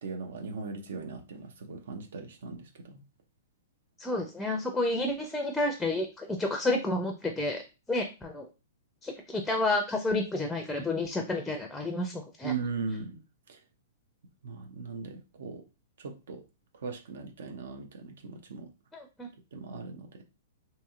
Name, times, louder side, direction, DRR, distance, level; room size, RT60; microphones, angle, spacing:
voice 1, 0.0-3.0 12.4-13.2 13.5-13.6 14.4-15.6 16.0-16.4 16.8-18.7 19.5-20.1, right 4 dB, 70° right, 0.5 m, -38 dB
voice 2, 4.0-7.6 7.9-8.5 9.0-12.5 18.9-19.3, left 2 dB, 5° left, 0.4 m, -30 dB
2.8 x 2.7 x 2.4 m
hypercardioid pair, 120°, 0 cm